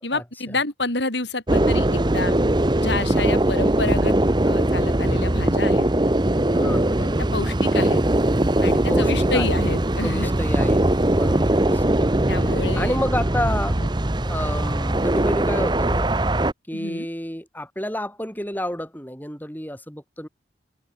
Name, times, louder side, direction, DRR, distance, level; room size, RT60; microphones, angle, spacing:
voice 1, 0.0-2.3 2.8-4.2 4.4-5.9 6.5-8.0 8.6-10.3 12.3-13.0 16.7-17.1, left 2 dB, 70° left, 5.7 m, -29 dB
sound 1, 1.5-16.5, right 1 dB, 25° right, 0.9 m, -21 dB
voice 2, 3.1-3.4 6.6-7.1 8.9-9.6 10.0-10.9 11.1-13.8 14.2-16.1 16.7-20.3, left 1 dB, 10° left, 7.3 m, -30 dB
head